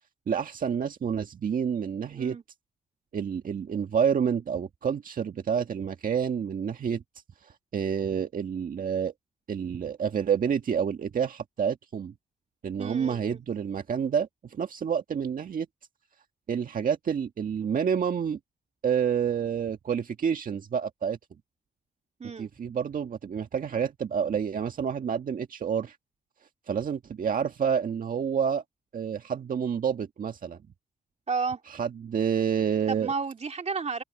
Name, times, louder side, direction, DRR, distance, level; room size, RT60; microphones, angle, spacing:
voice 1, 0.3-2.4 3.1-7.0 7.4-9.1 9.5-12.1 12.6-15.7 16.5-18.4 18.8-21.2 22.4-26.0 26.7-28.6 28.9-30.6 31.7-33.1, right 7 dB, 60° right, 1.7 m, -28 dB
voice 2, 2.1-2.4 12.8-13.4 22.2-22.5 31.3-31.6 32.9-34.0, right 5 dB, 45° right, 2.5 m, -32 dB
open air
supercardioid pair, 55°, 16 cm